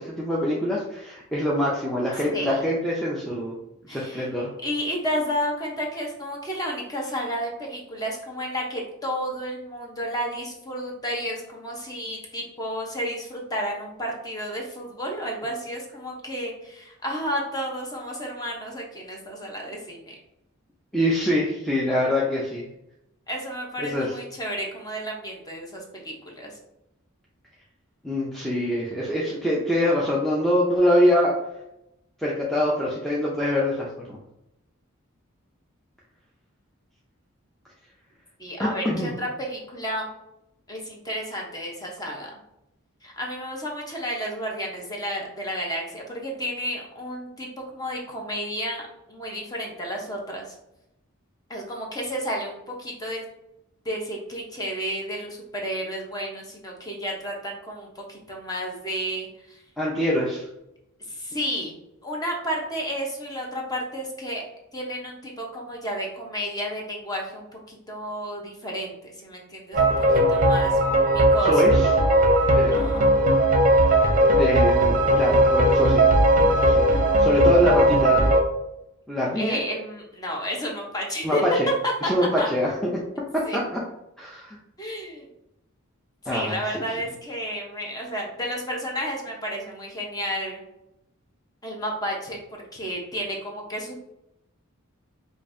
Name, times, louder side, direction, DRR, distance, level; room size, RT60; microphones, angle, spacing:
voice 1, 0.0-3.5 3.8-4.5 20.9-22.6 23.8-24.1 28.0-31.3 32.2-34.2 38.6-39.1 59.8-60.5 71.4-71.9 72.5-72.8 74.3-76.1 76.5-78.3 79.1-79.6 81.2-81.7 82.0-83.0 83.3-83.8 84.2-84.6 86.3-86.8, left 1 dB, ahead, -5 dB, 0.4 m, -24 dB
voice 2, 3.9-4.3 4.6-20.1 23.3-26.5 38.4-40.1 40.7-42.3 43.0-48.8 49.1-50.5 51.5-53.2 53.8-59.6 61.0-61.7 62.0-64.4 64.7-70.8 71.1-71.6 72.7-73.2 79.4-81.7 82.0-82.1 82.4-82.5 83.5-83.6 84.8-85.3 86.2-90.6 91.6-92.4 92.7-94.0, equal, 20° left, -1 dB, 0.8 m, -31 dB
sound 1, 69.7-78.4, right 1 dB, 40° right, 0.7 m, -18 dB
5.2 x 2.4 x 2.6 m, 0.86 s
head